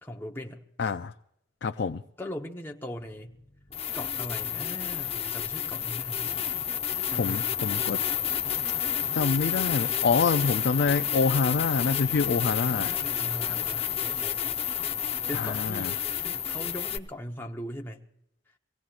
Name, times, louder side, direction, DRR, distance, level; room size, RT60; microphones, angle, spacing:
voice 1, 0.0-0.6 2.2-3.4 3.9-6.4 7.1-7.5 12.6-14.6 15.3-15.9 16.2-18.0, left 1 dB, 10° left, 0 dB, 1.1 m, -39 dB
voice 2, 0.8-1.1 1.6-2.0 7.2-8.0 9.1-12.9 15.3-15.9, left 4 dB, 60° left, 6 dB, 0.5 m, -26 dB
sound 1, 3.7-17.0, left 9 dB, 35° left, 0.8 m, -30 dB
25.0 x 17.0 x 2.5 m, 0.78 s
head